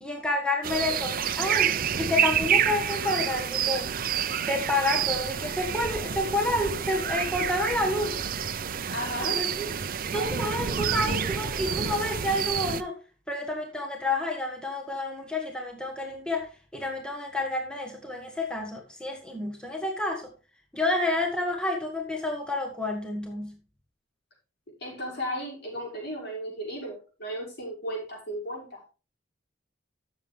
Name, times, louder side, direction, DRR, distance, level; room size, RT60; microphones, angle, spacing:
voice 1, 0.0-3.9 4.4-8.2 9.3-9.7 10.1-13.0 13.3-20.3 20.7-23.5, left 2 dB, 5° left, 1 dB, 1.5 m, -29 dB
sound 1, 0.6-12.8, right 8 dB, 50° right, 0.6 m, -28 dB
voice 2, 8.9-9.4 24.8-28.9, equal, 60° left, -4 dB, 6.0 m, -35 dB
13.5 x 7.2 x 3.5 m, 0.35 s
head